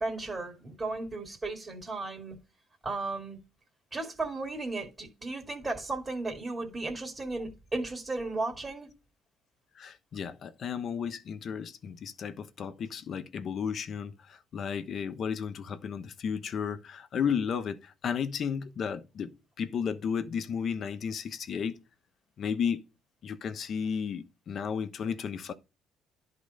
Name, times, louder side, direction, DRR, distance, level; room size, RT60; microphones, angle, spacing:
voice 1, 0.0-2.3 2.8-3.4 3.9-8.9, right 3 dB, 25° right, 2.2 m, -35 dB
voice 2, 9.8-21.8 22.4-22.9 23.2-25.5, left 7 dB, 50° left, 1.0 m, -33 dB
11.0 x 3.8 x 5.2 m
cardioid pair, 100°, 0 cm